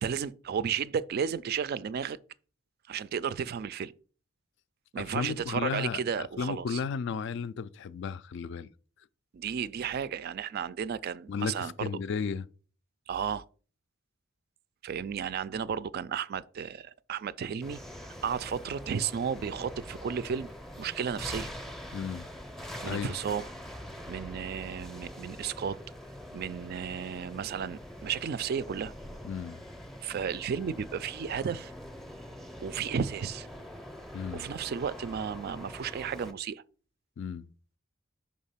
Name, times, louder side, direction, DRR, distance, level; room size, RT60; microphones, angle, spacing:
voice 1, 0.0-2.2 2.9-3.9 4.9-6.8 9.3-11.9 13.1-13.4 14.8-20.5 20.8-21.5 22.8-23.5 24.1-25.8 26.3-28.9 30.0-31.7 32.6-33.5 34.3-36.6, right 7 dB, 50° right, 0.3 m, -33 dB
voice 2, 5.0-8.7 11.3-12.5 21.9-22.3 22.8-23.1 29.2-29.6 34.1-34.4 37.2-37.5, left 6 dB, 60° left, 0.3 m, -34 dB
sound 1, 17.6-36.3, equal, ahead, 0.5 m, -44 dB
5.2 x 3.6 x 5.6 m
head